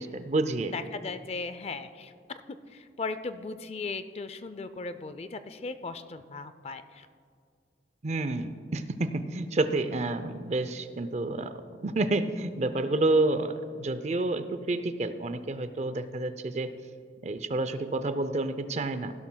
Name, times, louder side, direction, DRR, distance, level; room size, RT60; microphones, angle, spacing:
voice 1, 0.0-0.7 8.0-11.5 11.8-16.7 17.2-19.1, right 2 dB, 40° right, 10 dB, 0.5 m, -29 dB
voice 2, 0.7-2.1 2.7-7.1, left 4 dB, 35° left, 11 dB, 0.4 m, -37 dB
16.0 x 12.0 x 2.2 m, 2.3 s
head